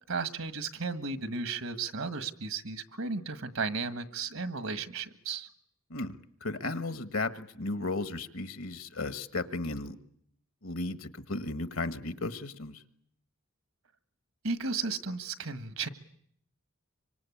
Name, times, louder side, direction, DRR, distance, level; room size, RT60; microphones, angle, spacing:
voice 1, 0.1-5.5 14.4-15.9, right 4 dB, 75° right, 11 dB, 1.6 m, -34 dB
voice 2, 5.9-10.0 10.6-12.8, left 2 dB, 75° left, 11 dB, 1.6 m, -35 dB
25.5 x 25.0 x 8.6 m, 0.67 s
head